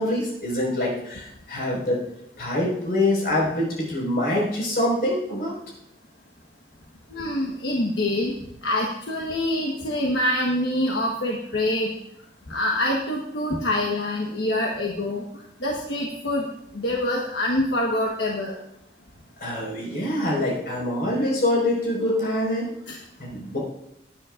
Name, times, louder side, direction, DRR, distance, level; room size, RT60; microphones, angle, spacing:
voice 1, 0.0-2.0 2.4-5.5 19.4-22.7 23.2-23.6, left 1 dB, 55° left, -4 dB, 5.1 m, -25 dB
voice 2, 7.1-8.3 8.6-11.9 12.5-15.2 15.6-16.5 16.7-18.6 22.9-23.0, left 1 dB, 80° left, -1 dB, 1.3 m, -25 dB
18.0 x 9.8 x 2.5 m, 0.77 s
head